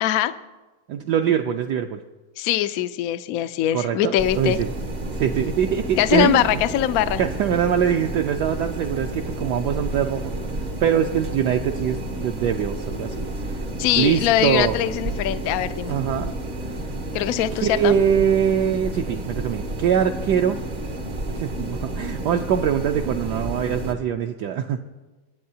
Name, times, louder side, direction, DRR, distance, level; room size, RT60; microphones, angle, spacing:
voice 1, 0.0-0.3 2.4-4.6 6.0-7.2 13.8-15.9 17.1-17.9, left 12 dB, 80° left, 11 dB, 0.8 m, -22 dB
voice 2, 0.9-2.0 3.7-4.7 5.1-6.6 7.2-13.3 13.5-13.6 14.0-14.8 15.9-16.3 17.6-20.6 21.3-24.8, right 8 dB, 70° right, 4 dB, 1.0 m, -23 dB
sound 1, 4.2-23.9, right 1 dB, 50° right, 0.5 m, -31 dB
25.0 x 9.3 x 2.8 m, 1.2 s
omnidirectional pair, 2.1 m